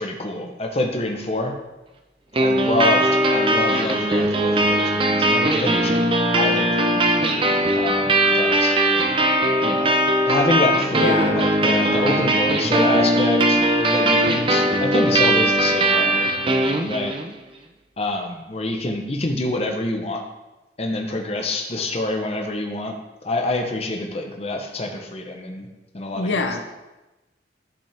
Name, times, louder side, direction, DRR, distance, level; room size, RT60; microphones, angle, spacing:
voice 1, 0.0-1.5 2.4-6.0 6.3-7.0 7.7-8.8 9.6-9.9 10.3-16.2 16.9-17.1 18.0-20.2 20.8-22.9 23.2-25.7 25.9-26.5, left 2 dB, 35° left, 3 dB, 0.8 m, -26 dB
sound 1, 2.3-17.3, right 1 dB, 30° right, 0.6 m, -19 dB
voice 2, 10.9-11.4 26.1-26.6, left 3 dB, 80° left, 6 dB, 0.7 m, -24 dB
10.5 x 5.1 x 3.4 m, 1.0 s
head